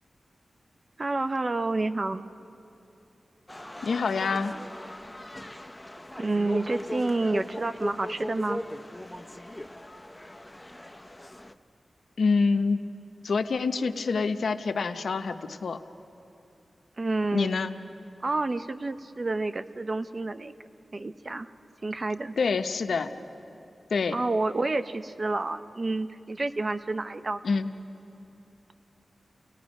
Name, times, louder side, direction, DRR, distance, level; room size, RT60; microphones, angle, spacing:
voice 1, 1.0-2.2 6.2-8.6 17.0-17.5 18.2-20.5 20.9-21.5 21.8-22.3 24.1-27.4, right 2 dB, 45° right, 11 dB, 0.7 m, -29 dB
sound 1, 3.5-11.5, left 1 dB, 15° left, 0.8 m, -38 dB
voice 2, 3.8-4.5 12.2-12.8 13.2-15.8 17.3-17.7 22.4-23.1 23.9-24.2 27.4-27.7, left 4 dB, 80° left, 9 dB, 0.7 m, -26 dB
29.5 x 19.0 x 5.3 m, 2.9 s
cardioid pair, 55°, 0 cm